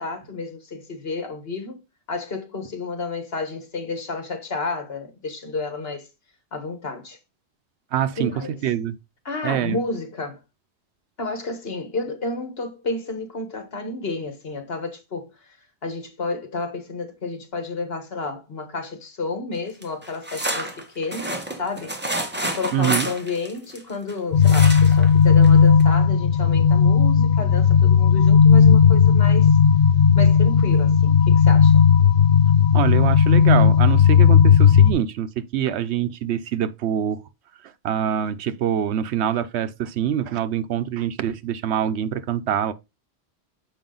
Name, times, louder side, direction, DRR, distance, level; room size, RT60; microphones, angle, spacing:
voice 1, 0.0-1.8 2.1-6.1 6.5-7.2 8.2-8.6 9.2-10.4 11.2-15.5 15.8-29.6 30.1-31.9, left 3 dB, 65° left, 1.7 m, -31 dB
voice 2, 7.9-8.3 8.6-9.0 9.4-9.8 22.7-23.1 32.7-37.2 37.8-42.7, right 9 dB, 85° right, 0.9 m, -25 dB
sound 1, 19.8-24.1 24.4-25.1 25.4-25.5 25.8-25.9, right 1 dB, 10° right, 1.1 m, -29 dB
sound 2, 24.3-34.9, left 7 dB, 85° left, 1.0 m, -15 dB
7.2 x 4.9 x 3.8 m
omnidirectional pair, 1.1 m